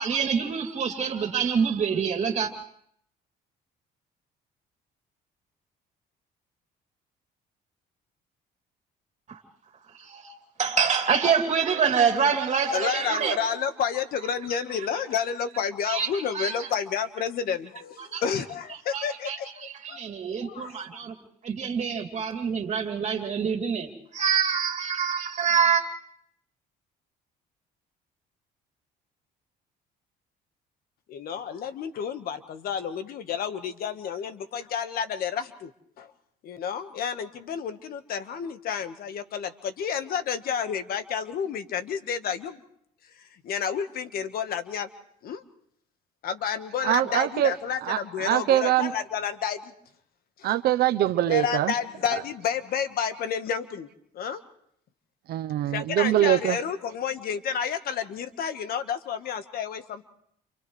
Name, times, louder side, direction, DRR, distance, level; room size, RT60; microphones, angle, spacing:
voice 1, 0.0-2.5 9.3-9.4 10.0-13.4 15.9-16.7 18.0-18.2 18.9-21.2 21.4-25.8, right 6 dB, 45° right, 4 dB, 2.8 m, -26 dB
voice 2, 12.7-20.0 20.3-20.7 31.1-35.7 36.0-36.1 36.4-42.6 43.4-44.9 45.2-45.4 46.2-49.7 50.4-50.5 51.3-53.9 54.1-54.4 55.7-60.1, left 7 dB, 65° left, 10 dB, 1.4 m, -30 dB
voice 3, 46.8-47.5 47.8-48.9 50.4-51.7 52.1-52.2 55.3-56.6, right 13 dB, 70° right, 11 dB, 0.7 m, -23 dB
29.5 x 28.0 x 3.2 m, 0.69 s
cardioid pair, 110°, 17 cm